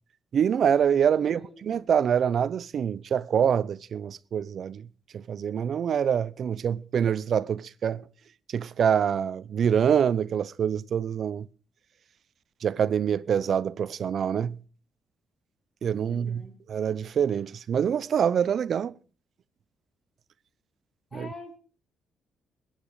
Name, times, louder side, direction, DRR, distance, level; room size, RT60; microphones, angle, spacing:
voice 1, 0.3-4.9 5.1-8.1 8.5-11.5 12.6-14.6 15.8-18.9 21.1-21.3, right 8 dB, 55° right, 0.7 m, -25 dB
voice 2, 16.1-16.5 21.1-21.6, left 2 dB, 35° left, 3.9 m, -44 dB
21.5 x 9.3 x 4.9 m
cardioid pair, 90°, 0 cm